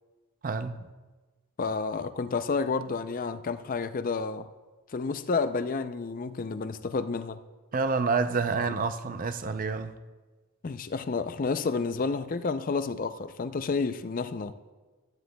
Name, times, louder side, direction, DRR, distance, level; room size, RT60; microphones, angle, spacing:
voice 1, 0.4-0.8 7.7-9.9, right 4 dB, 40° right, 0.5 m, -28 dB
voice 2, 1.6-4.5 4.9-7.4 10.6-14.5, left 4 dB, 40° left, 0.4 m, -30 dB
15.0 x 13.0 x 2.2 m
head